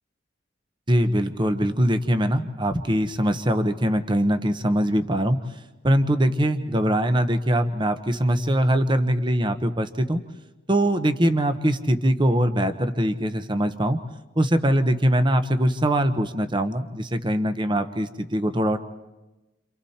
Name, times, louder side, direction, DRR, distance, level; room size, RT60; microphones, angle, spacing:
voice 1, 0.9-5.4 5.8-10.2 10.7-14.0 14.3-18.8, equal, 25° right, 9 dB, 1.1 m, -22 dB
29.0 x 27.0 x 4.4 m, 1.0 s
head